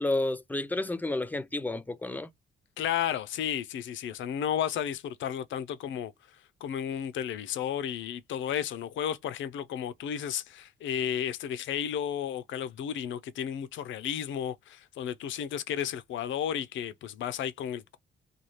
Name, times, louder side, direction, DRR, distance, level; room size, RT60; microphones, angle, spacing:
voice 1, 0.0-2.3, left 2 dB, 10° left, 0.6 m, -31 dB
voice 2, 2.8-6.1 6.6-18.0, left 9 dB, 75° left, 0.6 m, -33 dB
4.2 x 2.3 x 3.2 m
cardioid pair, 90°, 20 cm